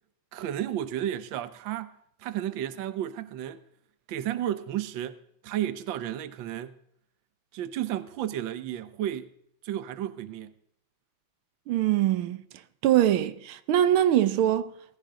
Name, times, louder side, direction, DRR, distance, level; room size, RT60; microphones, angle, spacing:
voice 1, 0.3-3.6 4.1-6.8 7.5-9.3 9.6-10.5, right 11 dB, 70° right, 1.6 m, -33 dB
voice 2, 11.7-12.4 12.8-14.7, right 11 dB, 90° right, 1.7 m, -23 dB
18.0 x 15.0 x 3.7 m
omnidirectional pair, 2.2 m